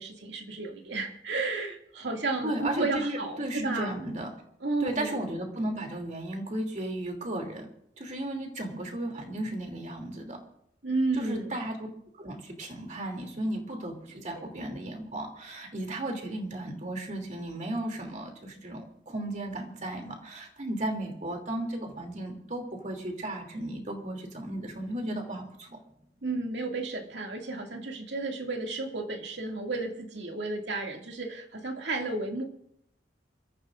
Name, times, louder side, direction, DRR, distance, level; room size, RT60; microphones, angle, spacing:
voice 1, 0.0-4.0 4.6-5.2 10.8-11.5 14.1-14.4 26.2-32.4, right 3 dB, 75° right, 2 dB, 2.3 m, -32 dB
voice 2, 2.4-4.3 4.8-7.7 8.0-10.4 11.1-11.9 12.1-13.9 14.2-25.8, right 1 dB, 40° right, 2 dB, 2.9 m, -35 dB
28.0 x 14.5 x 2.6 m, 0.74 s
head